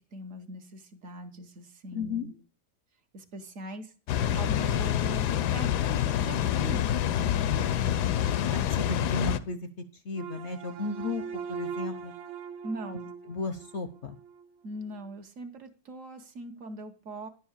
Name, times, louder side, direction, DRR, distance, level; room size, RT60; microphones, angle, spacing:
voice 1, 0.0-2.3 3.1-3.9 4.4-8.5 8.8-8.9 12.6-13.1 14.6-17.3, right 1 dB, 55° right, 6 dB, 1.2 m, -41 dB
voice 2, 1.9-2.3 8.3-12.1 13.3-14.2, left 3 dB, 60° left, 9 dB, 0.8 m, -35 dB
Water, 4.1-9.4, left 10 dB, 80° left, 1.2 m, -27 dB
sound 1, 10.1-14.5, right 7 dB, 90° right, 1.6 m, -40 dB
10.5 x 4.6 x 7.1 m, 0.35 s
omnidirectional pair, 1.7 m